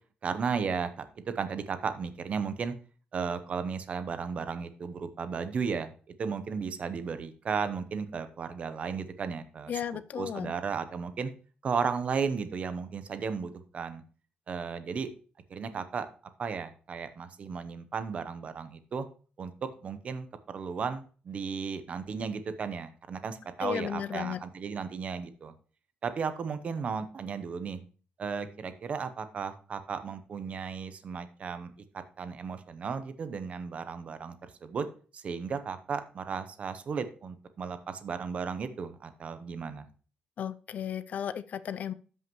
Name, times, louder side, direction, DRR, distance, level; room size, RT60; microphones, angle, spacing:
voice 1, 0.2-2.7 3.1-9.8 10.2-11.3 11.6-14.0 14.5-15.1 15.5-16.1 16.4-19.1 19.4-25.5 26.0-27.8 28.2-34.9 35.1-39.9, right 5 dB, 40° right, 11 dB, 0.8 m, -35 dB
voice 2, 9.7-10.5 23.6-24.4 40.4-41.9, left 9 dB, 50° left, 14 dB, 0.4 m, -34 dB
13.0 x 5.6 x 3.1 m, 0.40 s
cardioid pair, 170°, 3 cm